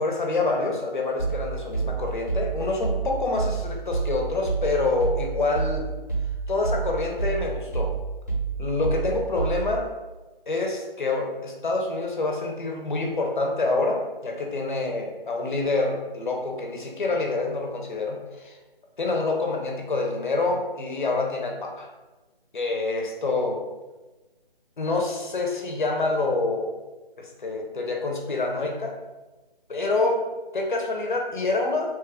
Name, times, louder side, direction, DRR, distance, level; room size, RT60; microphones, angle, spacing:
voice 1, 0.0-5.9 6.5-8.0 8.6-9.9 10.5-18.6 19.0-21.9 22.5-23.6 24.8-26.7 27.2-28.9 29.7-30.2 30.5-31.9, left 3 dB, 55° left, 1 dB, 0.7 m, -27 dB
sound 1, 1.2-9.9, right 5 dB, 20° right, 0.8 m, -29 dB
3.1 x 2.3 x 3.4 m, 1.1 s
hypercardioid pair, 170°, 30 cm